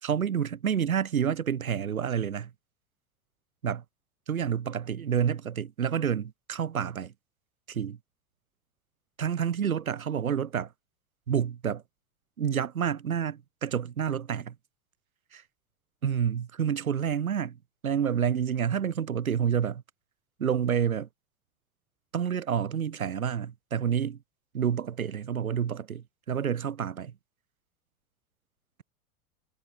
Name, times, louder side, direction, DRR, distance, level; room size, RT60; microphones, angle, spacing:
voice 1, 0.0-2.5 3.6-3.8 4.3-7.1 7.7-8.0 9.2-10.7 11.3-11.8 12.4-14.6 15.3-15.4 16.0-17.6 17.8-19.8 20.4-21.1 22.1-24.2 24.5-27.1, right 8 dB, 75° right, 1.9 m, -29 dB
figure-of-eight pair, 85°, 42 cm